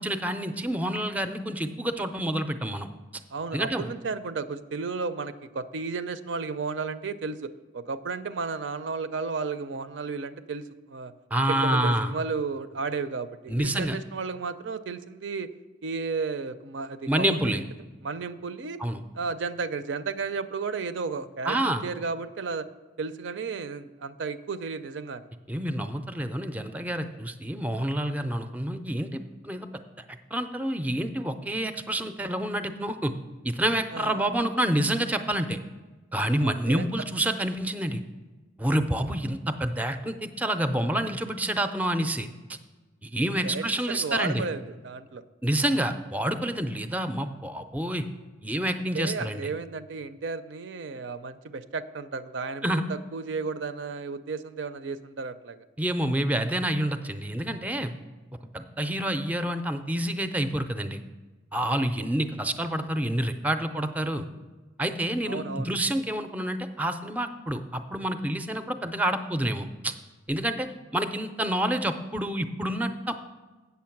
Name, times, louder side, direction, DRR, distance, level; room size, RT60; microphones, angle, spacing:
voice 1, 0.0-2.9 3.5-3.9 11.3-12.1 13.5-14.0 17.1-17.6 18.8-19.0 21.5-21.9 25.5-29.7 30.3-33.1 33.4-35.6 36.1-38.0 38.6-42.3 43.0-44.5 45.4-48.1 48.4-49.5 52.6-52.8 55.8-57.9 58.5-61.0 61.5-64.3 64.8-69.9 70.3-70.7 70.9-73.2, right 1 dB, 10° right, 9 dB, 0.4 m, -28 dB
voice 2, 3.3-11.1 11.5-15.5 15.8-17.6 18.0-18.8 19.1-21.6 21.8-22.7 23.0-25.3 33.9-34.2 36.4-36.9 43.4-45.2 48.9-55.7 65.2-65.7, right 4 dB, 75° right, 12 dB, 0.5 m, -33 dB
8.4 x 6.9 x 5.9 m, 1.2 s
head